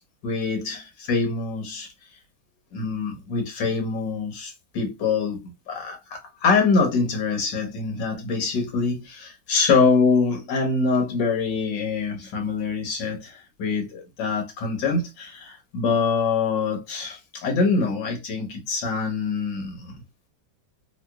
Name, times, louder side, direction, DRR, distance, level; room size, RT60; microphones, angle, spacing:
voice 1, 0.2-1.9 2.7-20.0, left 4 dB, 70° left, 1.7 m, -24 dB
3.3 x 2.9 x 2.3 m
omnidirectional pair, 2.0 m